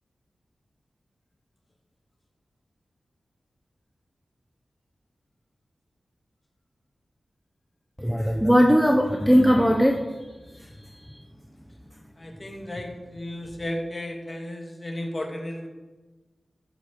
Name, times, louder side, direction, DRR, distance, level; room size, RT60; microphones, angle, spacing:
voice 1, 8.0-10.1 10.6-10.7 11.0-11.2, equal, ahead, 2 dB, 0.9 m, -19 dB
voice 2, 12.2-15.7, left 1 dB, 35° left, 1 dB, 2.3 m, -34 dB
13.5 x 7.5 x 4.7 m, 1.2 s
wide cardioid pair, 75°, 0 cm